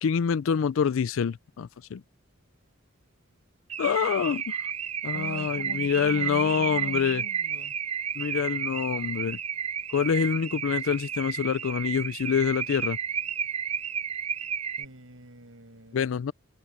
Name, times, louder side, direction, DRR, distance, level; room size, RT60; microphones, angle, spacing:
voice 1, 0.0-2.0 3.8-4.6 5.0-7.2 8.2-9.4 9.9-13.0 15.9-16.3, left 7 dB, 75° left, 0.4 m, -26 dB
Car / Alarm, 3.7-14.9, right 7 dB, 30° right, 0.3 m, -32 dB
voice 2, 5.1-7.8 14.8-16.0, right 1 dB, 80° right, 7.4 m, -43 dB
head